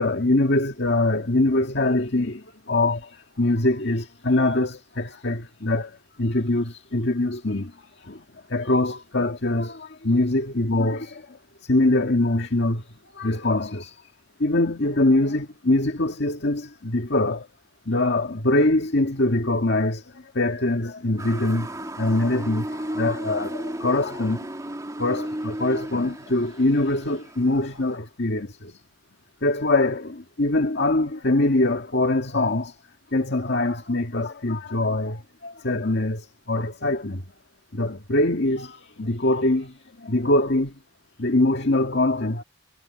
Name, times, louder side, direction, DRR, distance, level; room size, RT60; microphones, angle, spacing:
voice 1, 0.0-2.4 2.7-3.0 3.4-7.7 8.0-8.2 8.5-12.8 13.1-14.0 14.4-17.5 17.9-21.7 22.0-24.5 25.0-28.8 29.4-32.8 33.1-37.2 37.7-40.7 41.2-42.4, left 2 dB, 65° left, 2.0 m, -23 dB
Motor vehicle (road) / Siren, 21.2-27.9, right 1 dB, 20° right, 2.5 m, -34 dB
head